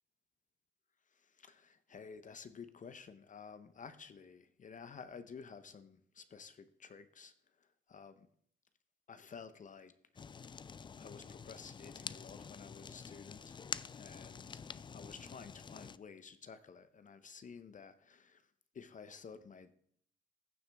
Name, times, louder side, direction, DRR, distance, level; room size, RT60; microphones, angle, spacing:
voice 1, 1.1-8.3 9.1-9.9 11.0-13.6 13.9-14.6 14.9-18.5 18.7-19.7, left 6 dB, 40° left, 12 dB, 0.7 m, -52 dB
Fire, 10.2-16.0, left 6 dB, 25° left, 0.3 m, -47 dB
15.0 x 6.9 x 3.4 m, 0.64 s
cardioid pair, 90°, 20 cm